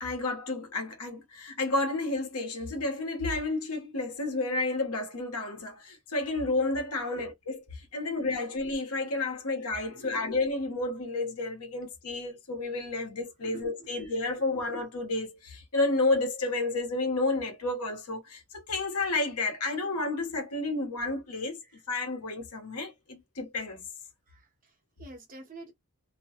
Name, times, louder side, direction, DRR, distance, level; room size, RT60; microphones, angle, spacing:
voice 1, 0.0-21.6 21.9-23.9, left 2 dB, 85° left, 1.1 m, -31 dB
voice 2, 9.9-10.3 13.4-14.1 21.6-21.8 24.3-25.7, right 2 dB, 40° right, 1.1 m, -49 dB
2.9 x 2.2 x 2.9 m
head